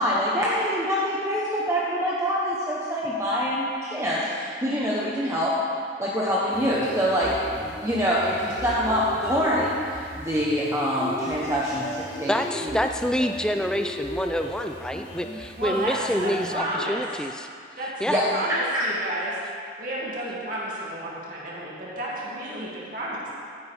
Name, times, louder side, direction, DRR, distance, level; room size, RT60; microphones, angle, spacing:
voice 1, 0.0-5.6 6.0-12.3 12.6-12.8 18.1-18.3 18.7-18.9, equal, 15° right, -6 dB, 1.1 m, -25 dB
sound 1, 6.5-16.5, equal, 25° left, 2.4 m, -38 dB
voice 2, 12.3-17.5 18.0-18.2, equal, 5° left, 5 dB, 0.4 m, -27 dB
voice 3, 15.6-16.0 16.2-17.0 17.8-17.9 18.3-19.3 19.8-23.2, right 1 dB, 45° right, -7 dB, 2.5 m, -31 dB
15.0 x 10.0 x 3.5 m, 2.2 s
head